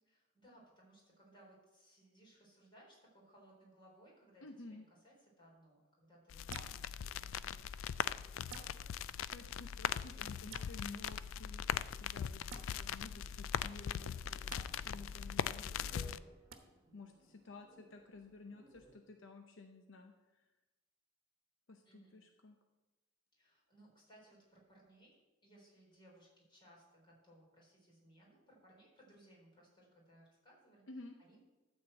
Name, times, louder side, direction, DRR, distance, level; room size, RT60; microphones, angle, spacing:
voice 1, 0.1-9.0 14.3-15.2 15.8-16.3 21.8-22.2 23.3-31.4, right 1 dB, 25° left, -3 dB, 4.0 m, -64 dB
voice 2, 4.4-4.8 9.3-14.5 14.8-16.1 16.9-20.5 21.7-22.6 30.9-31.1, left 3 dB, 70° left, 4 dB, 0.8 m, -53 dB
sound 1, 6.3-16.2, left 8 dB, 85° left, 0.3 m, -40 dB
sound 2, 6.5-6.8 8.5-8.7 10.5-10.7 12.5-12.6 14.5-14.6 16.5-16.6, right 5 dB, 80° right, 1.1 m, -48 dB
sound 3, 13.8-19.0, right 1 dB, 15° right, 1.1 m, -62 dB
13.0 x 4.4 x 7.7 m, 1.1 s
head